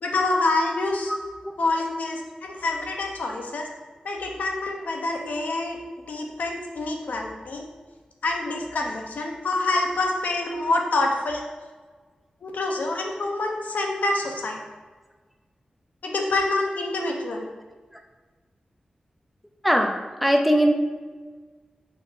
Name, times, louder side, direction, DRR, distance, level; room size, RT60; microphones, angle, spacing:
voice 1, 0.0-1.1 1.6-3.7 4.0-5.8 6.1-7.6 8.2-11.4 12.4-14.6 16.0-17.5, left 2 dB, 85° left, 1 dB, 1.0 m, -26 dB
voice 2, 20.2-20.7, equal, ahead, 2 dB, 0.7 m, -19 dB
5.8 x 3.9 x 5.7 m, 1.4 s
wide cardioid pair, 95°, 3 cm